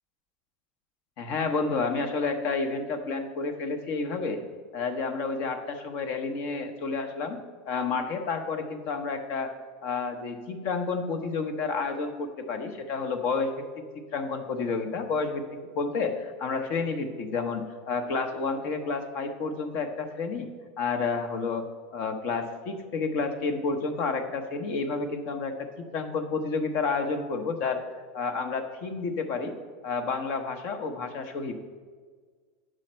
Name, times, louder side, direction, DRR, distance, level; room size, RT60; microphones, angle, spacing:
voice 1, 1.2-4.4 4.7-7.4 7.6-9.5 9.8-13.5 13.9-15.4 15.7-20.5 20.8-21.7 21.9-27.8 28.1-29.5 29.8-31.5, left 4 dB, 50° left, 7 dB, 0.9 m, -30 dB
9.7 x 6.4 x 4.4 m, 1.5 s
supercardioid pair, 160°, 4 cm